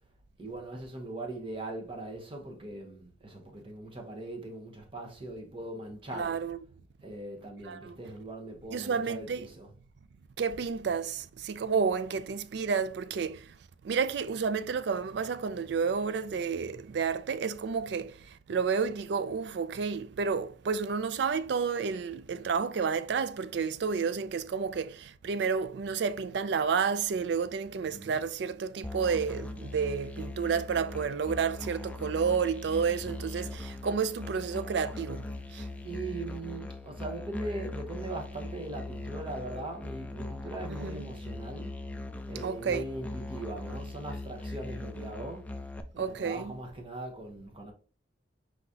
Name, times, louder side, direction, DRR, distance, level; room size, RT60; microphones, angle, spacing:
voice 1, 0.4-6.3 7.0-9.7 27.7-28.2 32.7-33.2 35.8-41.7 42.3-45.5 45.9-47.7, right 2 dB, 30° right, 0.9 m, -40 dB
voice 2, 6.2-6.6 7.6-8.0 8.7-9.5 10.4-13.6 13.8-35.7 40.7-41.1 42.4-42.9 46.0-46.5, right 6 dB, 65° right, 0.3 m, -31 dB
Musical instrument, 28.8-45.8, left 2 dB, 10° left, 0.3 m, -40 dB
4.8 x 3.9 x 2.7 m
head